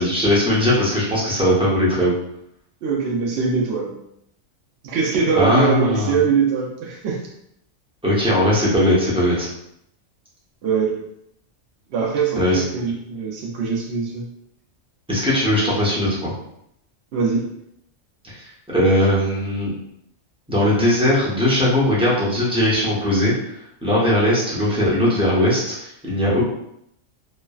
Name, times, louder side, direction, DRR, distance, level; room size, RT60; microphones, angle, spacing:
voice 1, 0.0-2.1 5.3-6.1 8.0-9.5 12.3-12.6 15.1-16.3 18.2-18.4 18.7-19.7 20.5-23.5 23.8-26.4, left 1 dB, 5° right, -8 dB, 0.6 m, -19 dB
voice 2, 2.8-4.0 4.8-7.2 10.6-11.0 11.9-14.3 17.1-17.5, right 5 dB, 65° right, -3 dB, 0.7 m, -22 dB
3.1 x 2.1 x 2.3 m, 0.75 s
omnidirectional pair, 1.3 m